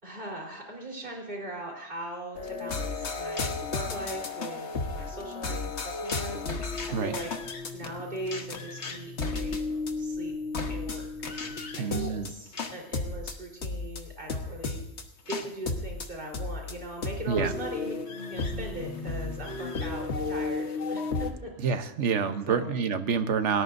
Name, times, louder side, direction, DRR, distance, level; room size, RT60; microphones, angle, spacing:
voice 1, 0.0-7.3 7.7-9.6 10.0-10.3 10.7-11.1 11.8-14.8 15.3-17.9 18.3-21.7 22.5-22.8, right 1 dB, 45° right, -1 dB, 4.3 m, -40 dB
sound 1, 2.4-21.3, left 3 dB, 65° left, 1.6 m, -33 dB
voice 2, 11.8-12.3 17.3-17.5 21.6-23.6, right 6 dB, 70° right, 9 dB, 1.3 m, -27 dB
28.5 x 18.5 x 2.7 m, 0.86 s
omnidirectional pair, 1.3 m